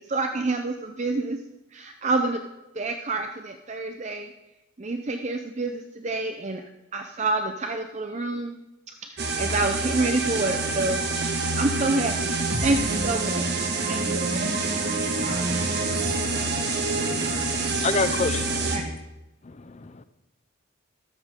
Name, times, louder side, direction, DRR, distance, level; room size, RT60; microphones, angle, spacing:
voice 1, 0.0-1.4 1.7-2.4 2.7-4.3 4.8-6.6 6.9-8.6 9.0-11.0 11.6-12.3 12.6-14.6 18.7-18.9, right 2 dB, 30° right, 6 dB, 0.6 m, -28 dB
sound 1, 9.2-18.8, right 3 dB, 50° right, 1.5 m, -26 dB
voice 2, 15.1-17.2, equal, 70° right, -2 dB, 4.0 m, -40 dB
voice 3, 16.7-17.1 17.7-19.0 19.4-20.0, left 4 dB, 30° left, 13 dB, 0.5 m, -29 dB
13.5 x 12.5 x 3.7 m, 0.98 s
head